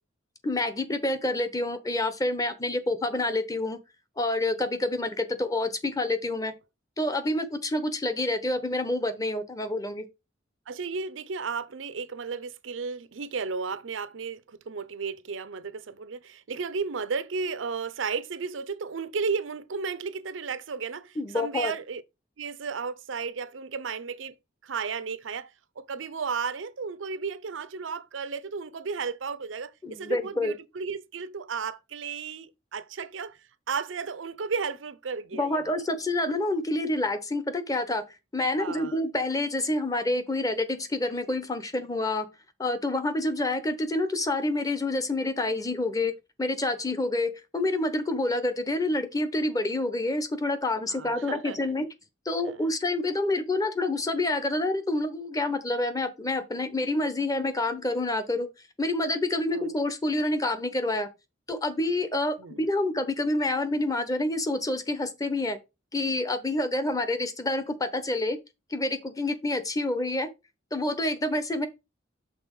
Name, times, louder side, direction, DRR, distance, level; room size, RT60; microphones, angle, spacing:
voice 1, 0.4-3.8 4.2-6.5 7.0-10.0 21.2-21.7 29.8-30.5 35.3-38.0 38.3-42.3 42.6-51.8 52.2-58.5 58.8-61.1 61.5-65.6 65.9-68.4 68.7-70.3 70.7-71.7, left 2 dB, 20° left, 0.9 m, -28 dB
voice 2, 10.7-22.0 22.4-24.3 24.6-33.4 33.7-35.8 38.6-39.0 50.9-51.8 52.4-52.6 59.5-59.7 62.4-62.7, right 5 dB, 90° right, 0.6 m, -34 dB
6.1 x 3.9 x 5.3 m
head